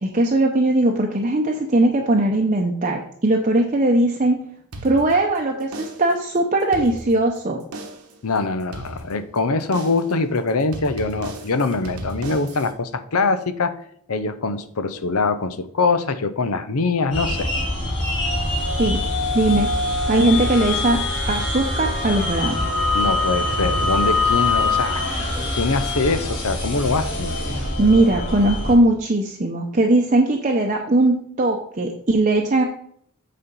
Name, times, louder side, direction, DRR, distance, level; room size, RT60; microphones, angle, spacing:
voice 1, 0.0-4.4 4.8-7.6 18.8-19.0 19.3-19.7 20.1-21.0 21.3-22.7 27.8-32.6, right 2 dB, 35° right, 1 dB, 0.7 m, -19 dB
sound 1, 4.7-5.4 5.7-6.2 6.6-7.4 7.7-8.2 8.7-9.4 9.7-10.2 10.7-12.7, right 1 dB, 90° right, 1.2 m, -36 dB
voice 2, 8.2-13.8 14.1-17.5 22.9-25.2 25.5-27.4, left 3 dB, 75° left, 12 dB, 0.7 m, -23 dB
sound 2, 17.1-28.7, left 2 dB, 55° left, 3.6 m, -23 dB
8.3 x 4.2 x 5.4 m, 0.66 s
head